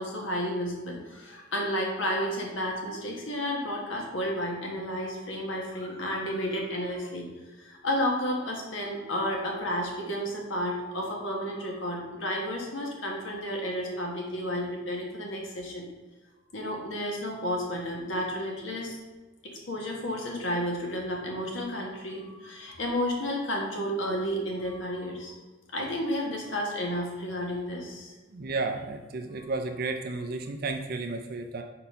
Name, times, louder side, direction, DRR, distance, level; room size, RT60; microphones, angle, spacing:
voice 1, 0.0-7.3 7.6-15.8 16.5-19.0 19.4-25.3 25.7-28.1 29.3-29.5, equal, 70° left, -1 dB, 1.6 m, -32 dB
voice 2, 28.3-31.6, right 3 dB, 50° right, 4 dB, 0.5 m, -32 dB
5.1 x 4.4 x 5.5 m, 1.3 s
head